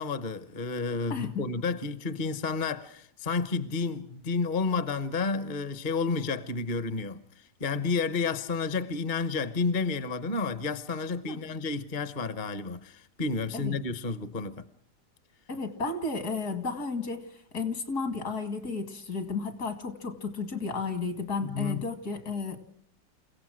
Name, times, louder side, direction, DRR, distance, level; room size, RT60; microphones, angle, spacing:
voice 1, 0.0-14.6 21.4-21.8, left 4 dB, 35° left, 0.9 m, -31 dB
voice 2, 1.1-1.4 11.3-11.5 13.5-13.8 15.5-17.3 17.5-22.6, left 4 dB, 65° left, 2.9 m, -33 dB
28.5 x 16.5 x 6.3 m
omnidirectional pair, 1.8 m